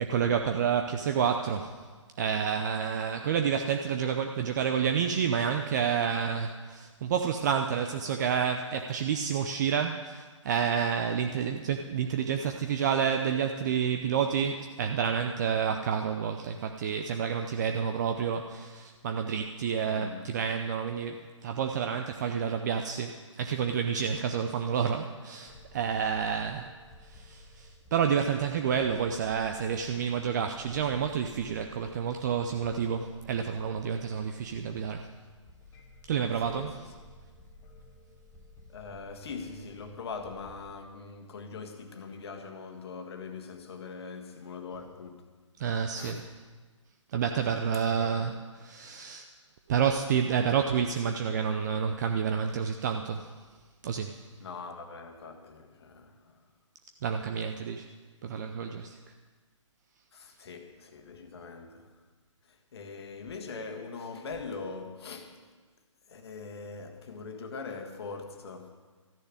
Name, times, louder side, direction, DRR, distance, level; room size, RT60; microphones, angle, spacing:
voice 1, 0.0-1.7 2.2-26.7 27.0-35.1 36.1-36.8 45.6-46.2 47.1-48.3 48.6-49.3 49.7-53.3 53.8-54.2 57.0-57.9 58.2-59.0, right 7 dB, 35° right, 0.6 m, -29 dB
voice 2, 19.8-20.3 36.4-36.9 38.7-45.3 45.9-46.3 47.9-48.3 54.4-56.4 60.1-61.9 62.5-65.4 66.1-68.7, left 4 dB, 50° left, 1.7 m, -42 dB
sound 1, 25.5-40.7, left 1 dB, 20° left, 1.6 m, -54 dB
13.5 x 6.7 x 9.6 m
figure-of-eight pair, 140°, 17 cm